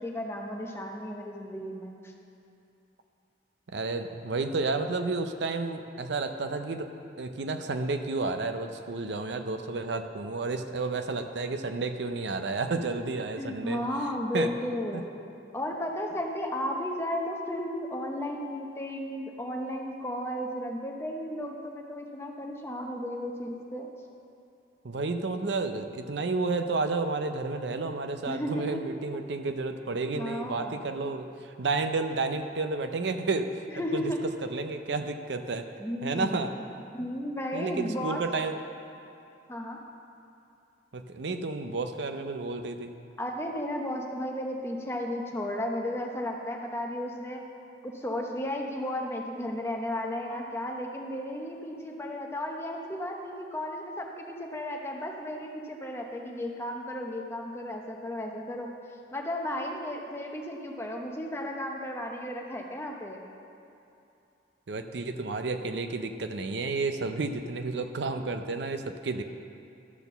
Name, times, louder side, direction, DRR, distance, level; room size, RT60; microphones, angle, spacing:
voice 1, 0.0-2.1 13.4-15.0 15.5-23.9 28.3-28.8 30.1-30.8 33.7-34.2 35.8-36.5 36.9-38.2 39.5-39.8 43.2-47.4 47.8-58.7 59.1-63.2, left 1 dB, 15° left, 0 dB, 0.8 m, -34 dB
voice 2, 3.7-6.9 7.2-13.8 14.3-14.5 14.9-15.0 24.8-33.6 33.9-34.1 34.5-35.7 36.0-36.5 37.5-38.6 40.9-42.9 64.7-69.2, right 3 dB, 70° right, 7 dB, 0.6 m, -31 dB
12.0 x 4.4 x 6.8 m, 2.7 s
head